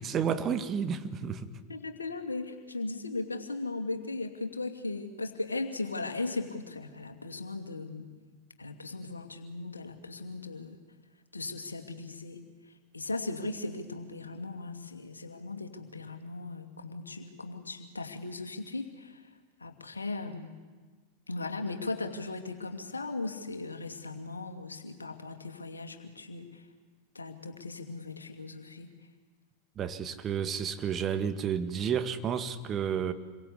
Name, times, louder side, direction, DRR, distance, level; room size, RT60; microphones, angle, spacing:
voice 1, 0.0-1.5 29.8-33.1, right 7 dB, 25° right, 1.9 m, -31 dB
voice 2, 1.7-8.1 8.6-10.8 11.3-12.4 12.9-19.2 19.6-20.6 21.3-26.6 27.1-28.9, left 3 dB, 80° left, 2.5 m, -38 dB
28.5 x 23.0 x 8.5 m
figure-of-eight pair, 90°, 0 cm